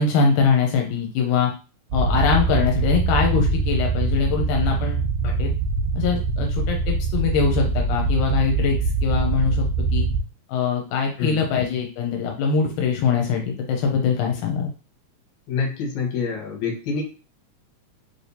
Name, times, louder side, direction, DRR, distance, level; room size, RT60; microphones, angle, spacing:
voice 1, 0.0-1.5 1.9-5.5 5.9-10.1 10.5-14.7, left 5 dB, 90° left, 1 dB, 2.2 m, -23 dB
sound 1, 1.9-10.2, right 4 dB, 80° right, 2.0 m, -23 dB
voice 2, 15.5-17.0, left 5 dB, 75° left, -1 dB, 2.4 m, -26 dB
4.6 x 3.3 x 2.7 m, 0.35 s
omnidirectional pair, 3.6 m